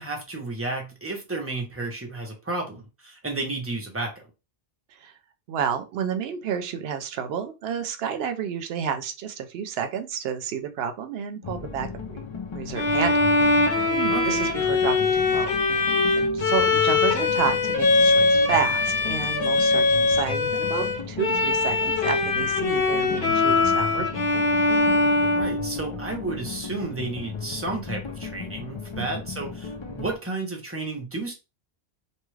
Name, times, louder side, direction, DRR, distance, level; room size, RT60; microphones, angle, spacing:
voice 1, 0.0-4.2 14.1-14.4 25.3-31.3, right 2 dB, 15° right, 1 dB, 0.7 m, -32 dB
voice 2, 5.5-12.2 12.5-24.5 29.0-29.1, right 7 dB, 75° right, 8 dB, 0.8 m, -31 dB
sound 1, 11.4-30.2, left 5 dB, 50° left, 0.3 m, -36 dB
Bowed string instrument, 12.8-26.2, left 3 dB, 70° left, 0.9 m, -22 dB
2.8 x 2.3 x 3.1 m, 0.28 s
omnidirectional pair, 1.0 m